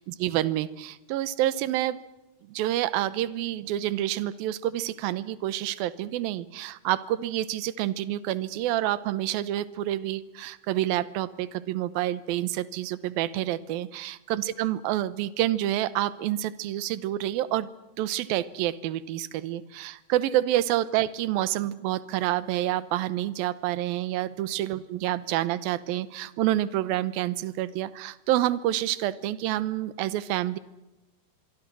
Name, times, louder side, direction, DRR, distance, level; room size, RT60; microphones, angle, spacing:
voice 1, 0.0-2.0 2.5-17.7 18.0-30.6, right 14 dB, 75° right, 17 dB, 2.3 m, -28 dB
25.5 x 23.5 x 6.2 m, 0.95 s
omnidirectional pair, 5.1 m